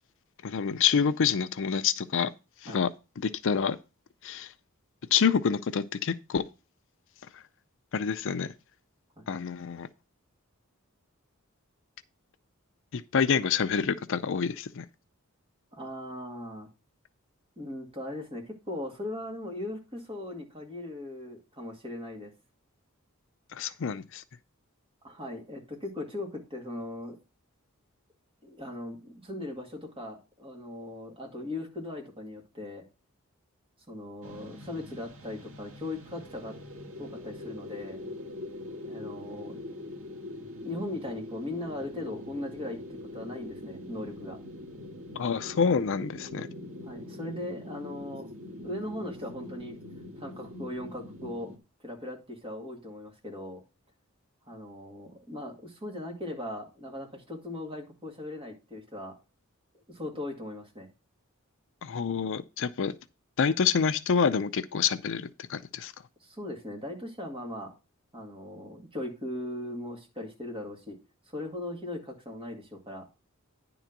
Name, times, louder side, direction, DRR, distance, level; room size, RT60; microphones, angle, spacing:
voice 1, 0.4-2.3 2.6-2.9 3.2-3.8 4.2-4.5 5.1-6.5 7.9-8.5 9.3-9.9 12.9-14.8 23.5-24.2 45.2-46.5 61.8-62.9 63.4-65.9, left 6 dB, 60° left, 0.5 m, -27 dB
voice 2, 15.7-16.7 17.6-22.3 25.0-27.2 28.4-32.8 33.9-36.5 37.0-38.1 38.8-39.8 40.6-42.8 43.1-44.4 46.8-48.3 48.6-49.8 50.2-51.5 51.8-53.6 54.5-59.2 59.9-60.9 66.2-67.7 68.1-71.0 71.3-73.1, left 1 dB, 25° right, 2.2 m, -39 dB
sound 1, 34.2-51.6, left 1 dB, 75° right, 1.8 m, -43 dB
10.0 x 3.9 x 5.8 m
head